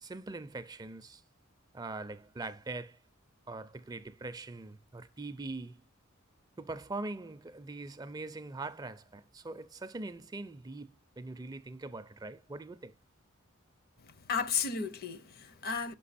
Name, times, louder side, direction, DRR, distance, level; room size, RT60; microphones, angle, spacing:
voice 1, 0.0-1.2 1.7-3.0 3.5-5.8 6.6-12.9, right 2 dB, 20° right, 0.4 m, -42 dB
voice 2, 14.0-16.0, left 6 dB, 50° left, 0.7 m, -34 dB
6.0 x 5.7 x 4.1 m
head